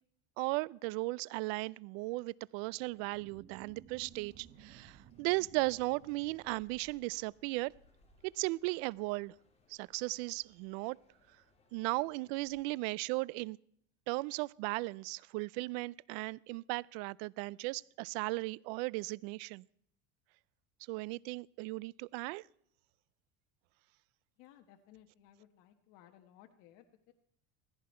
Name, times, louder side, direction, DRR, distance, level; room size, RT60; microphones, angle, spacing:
voice 1, 0.4-7.7 8.2-9.3 9.7-11.0 11.7-13.6 14.1-19.6 20.9-22.4, right 23 dB, 70° right, 0.5 m, -36 dB
sound 1, 2.6-7.6, right 9 dB, 40° right, 1.3 m, -59 dB
sound 2, 3.9-12.8, left 2 dB, 20° left, 2.9 m, -69 dB
voice 2, 24.4-27.1, left 11 dB, 65° left, 1.4 m, -60 dB
16.5 x 15.0 x 4.4 m
supercardioid pair, 130°, 32 cm